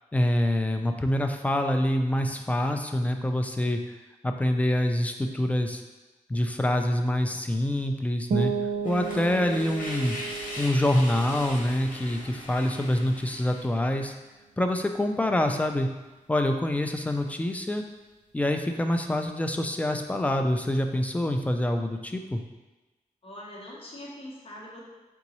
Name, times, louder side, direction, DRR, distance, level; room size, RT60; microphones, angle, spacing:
voice 1, 0.1-3.8 4.2-5.8 6.3-8.5 8.8-10.2 10.6-14.1 14.6-15.9 16.3-17.8 18.3-22.4, left 1 dB, 10° left, 5 dB, 0.3 m, -26 dB
sound 1, 8.3-13.9, right 6 dB, 80° right, 0.6 m, -35 dB
sound 2, 8.8-13.8, left 1 dB, 80° left, 1.0 m, -40 dB
voice 2, 23.2-24.8, left 1 dB, 45° left, -4 dB, 1.0 m, -42 dB
3.9 x 3.5 x 3.0 m, 1.1 s
wide cardioid pair, 100°, 14 cm